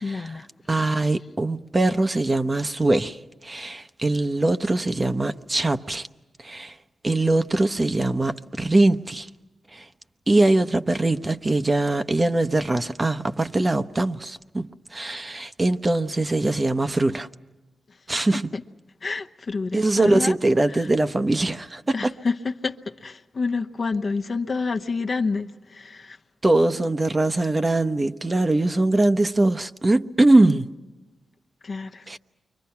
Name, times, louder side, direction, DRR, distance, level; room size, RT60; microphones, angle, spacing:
voice 1, 0.0-0.5 18.5-18.6 19.0-20.3 20.7-20.9 21.9-26.2 31.6-32.2, left 4 dB, 55° left, 1.0 m, -28 dB
voice 2, 0.7-6.1 6.4-6.7 7.0-9.3 9.7-9.9 10.3-17.3 18.1-18.5 19.7-22.1 26.4-30.7 32.1-32.2, right 2 dB, 30° right, 0.9 m, -22 dB
29.5 x 24.0 x 5.9 m
cardioid pair, 50°, 0 cm